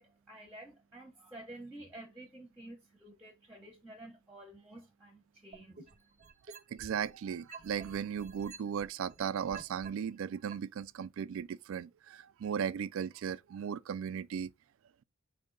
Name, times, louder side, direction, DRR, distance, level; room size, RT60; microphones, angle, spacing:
voice 1, 0.0-6.2, right 1 dB, 5° right, 0.9 m, -51 dB
sound 1, 5.5-7.1 7.5-9.9 10.5-10.6, right 5 dB, 30° right, 0.7 m, -49 dB
voice 2, 6.7-14.5, right 7 dB, 60° right, 0.3 m, -36 dB
5.1 x 2.7 x 3.9 m
head